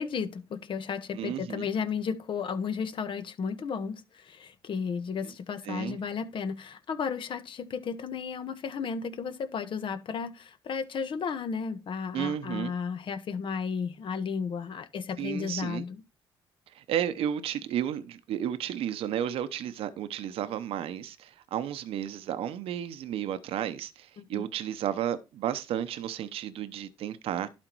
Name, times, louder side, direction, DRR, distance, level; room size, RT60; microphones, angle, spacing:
voice 1, 0.0-16.0 24.2-24.5, left 6 dB, 60° left, 1.2 m, -33 dB
voice 2, 1.1-1.7 5.6-6.0 12.1-12.7 15.2-15.8 16.7-27.5, right 10 dB, 75° right, 0.8 m, -33 dB
11.5 x 4.3 x 4.6 m
supercardioid pair, 70°, 10 cm